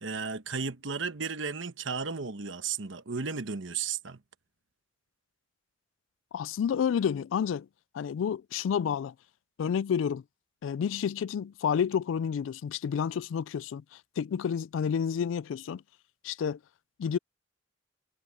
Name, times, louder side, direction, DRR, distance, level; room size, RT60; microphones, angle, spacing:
voice 1, 0.0-4.2, right 5 dB, 80° right, 1.2 m, -34 dB
voice 2, 6.3-7.7 7.9-9.1 9.6-10.2 10.6-13.8 14.2-15.8 16.2-16.6 17.0-17.2, left 7 dB, 85° left, 0.3 m, -29 dB
head